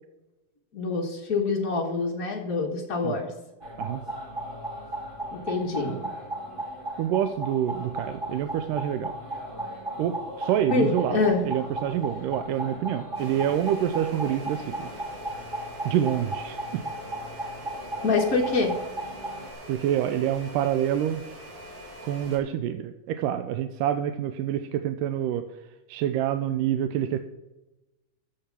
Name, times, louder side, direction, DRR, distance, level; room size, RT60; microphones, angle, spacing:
voice 1, 0.7-3.3 5.3-5.9 10.7-11.4 18.0-18.7, left 4 dB, 85° left, 1 dB, 0.7 m, -25 dB
sound 1, 3.6-19.5, right 1 dB, 35° right, 0.8 m, -36 dB
voice 2, 7.0-9.1 10.0-14.9 15.9-16.8 17.4-17.5 19.7-21.2 22.0-25.5 25.9-27.2, right 10 dB, 90° right, 8 dB, 2.2 m, -27 dB
sound 2, 13.2-22.4, right 1 dB, 70° right, 4.3 m, -43 dB
14.0 x 6.6 x 6.0 m, 0.99 s
omnidirectional pair, 3.7 m